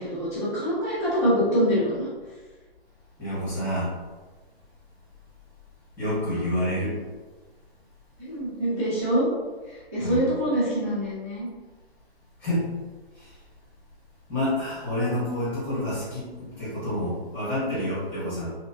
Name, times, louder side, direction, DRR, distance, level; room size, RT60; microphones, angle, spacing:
voice 1, 0.0-2.1 8.2-9.3 9.7-11.5, equal, 15° right, -13 dB, 0.4 m, -25 dB
voice 2, 3.2-3.9 6.0-7.0 10.0-10.3 12.4-12.7 13.1-13.3 14.3-18.5, left 1 dB, 5° left, -11 dB, 1.0 m, -28 dB
3.1 x 2.8 x 2.5 m, 1.3 s
hypercardioid pair, 160°, 32 cm